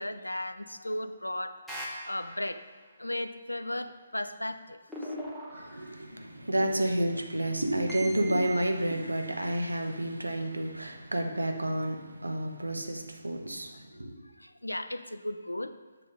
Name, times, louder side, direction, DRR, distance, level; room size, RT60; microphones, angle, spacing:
voice 1, 0.0-2.6 3.0-5.2 14.2-15.7, left 1 dB, 85° left, 11 dB, 0.4 m, -36 dB
sound 1, 1.7-2.7 4.9-6.1 7.9-8.6, right 1 dB, ahead, 1.2 m, -40 dB
voice 2, 5.5-14.2, right 1 dB, 85° right, 4 dB, 0.8 m, -30 dB
8.4 x 3.5 x 5.2 m, 1.3 s
figure-of-eight pair, 140°, 0 cm